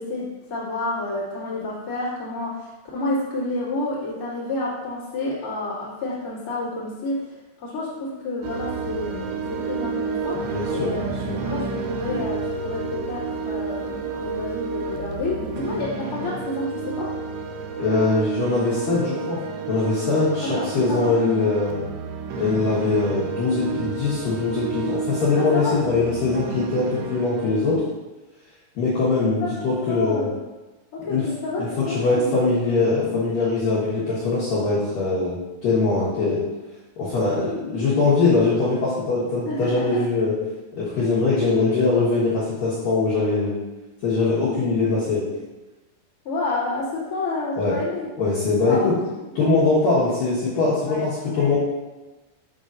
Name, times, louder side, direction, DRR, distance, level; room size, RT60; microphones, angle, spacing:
voice 1, 0.0-7.3 7.6-17.1 20.4-21.2 25.4-26.1 27.5-27.6 29.9-30.4 30.9-32.3 39.4-40.0 46.2-48.1 48.6-48.9 49.2-49.3 50.8-51.5, left 2 dB, 55° left, -9 dB, 0.9 m, -29 dB
sound 1, 8.4-27.8, right 4 dB, 80° right, 2.8 m, -30 dB
voice 2, 10.5-11.5 17.8-19.4 19.7-21.8 22.4-27.8 28.8-30.3 31.1-31.3 31.6-36.4 37.0-40.3 40.7-43.6 44.0-45.3 47.6-47.8 48.2-48.9 49.4-51.6, left 3 dB, 75° left, -9 dB, 2.0 m, -22 dB
8.5 x 5.6 x 2.6 m, 1.1 s
omnidirectional pair, 6.0 m